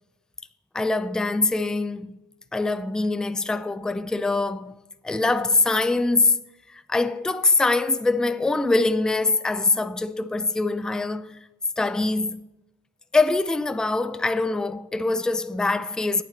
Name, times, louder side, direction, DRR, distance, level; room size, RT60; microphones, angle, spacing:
voice 1, 0.7-2.1 2.5-4.7 5.0-6.4 6.7-11.5 11.8-12.4 13.1-16.2, left 3 dB, ahead, 0.4 m, -23 dB
9.3 x 5.8 x 7.4 m
cardioid pair, 90°, 30 cm